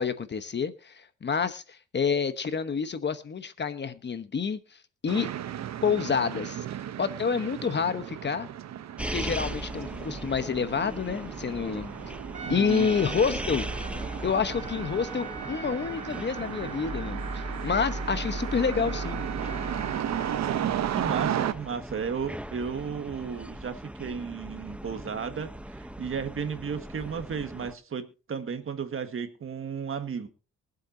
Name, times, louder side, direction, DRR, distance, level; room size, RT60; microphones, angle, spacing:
voice 1, 0.0-4.6 5.0-5.3 5.8-6.6 7.0-8.5 9.0-11.9 12.5-13.7 14.2-19.2, left 6 dB, 35° left, 1.1 m, -28 dB
sound 1, 5.1-21.5, right 10 dB, 60° right, 1.0 m, -35 dB
sound 2, 9.0-27.7, right 1 dB, 5° right, 0.8 m, -38 dB
Trumpet, 12.3-20.8, right 4 dB, 25° right, 4.8 m, -44 dB
voice 2, 12.4-12.9 20.9-30.3, right 6 dB, 45° right, 1.7 m, -34 dB
23.5 x 8.0 x 2.8 m
cardioid pair, 90°, 30 cm